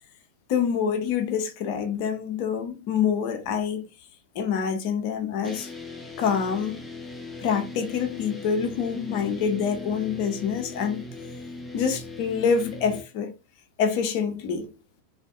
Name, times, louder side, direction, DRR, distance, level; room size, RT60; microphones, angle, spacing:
voice 1, 0.5-3.8 4.3-5.7 6.2-6.8 7.4-11.0 11.7-13.3 13.8-14.7, left 7 dB, 45° left, 0.5 m, -26 dB
sound 1, 5.4-13.0, left 2 dB, 5° left, 0.6 m, -39 dB
2.5 x 2.4 x 2.3 m
figure-of-eight pair, 90°, 0 cm